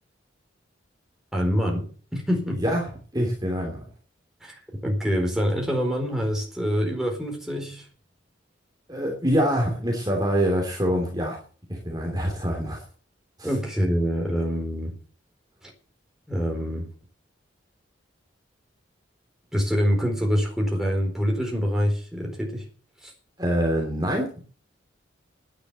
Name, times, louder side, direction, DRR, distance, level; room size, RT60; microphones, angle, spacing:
voice 1, 1.3-1.8 2.1-2.6 4.4-7.9 13.4-15.0 15.6-15.7 16.3-16.9 19.5-22.7 23.0-23.1, equal, ahead, -1 dB, 4.3 m, -25 dB
voice 2, 2.6-3.8 8.9-11.4 11.7-12.8 13.4-13.5 23.4-24.3, equal, 20° right, 0 dB, 2.9 m, -25 dB
10.5 x 9.9 x 8.1 m, 0.41 s
head